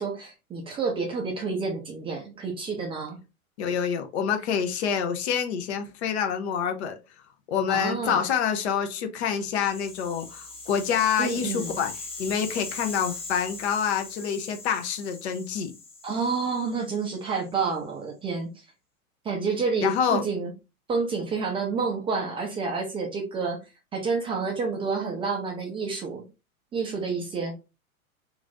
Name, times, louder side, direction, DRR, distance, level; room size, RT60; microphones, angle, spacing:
voice 1, 0.0-3.2 7.7-8.2 11.2-11.8 16.0-18.5 19.2-20.5 20.9-23.6 23.9-26.2 26.7-27.5, right 4 dB, 10° right, 0.5 m, -29 dB
voice 2, 3.6-7.0 7.5-15.7 19.8-20.2, left 7 dB, 50° left, 0.8 m, -27 dB
Rattle (instrument), 9.3-17.5, left 3 dB, 15° left, 1.1 m, -41 dB
3.1 x 2.5 x 3.7 m
figure-of-eight pair, 95°, 43 cm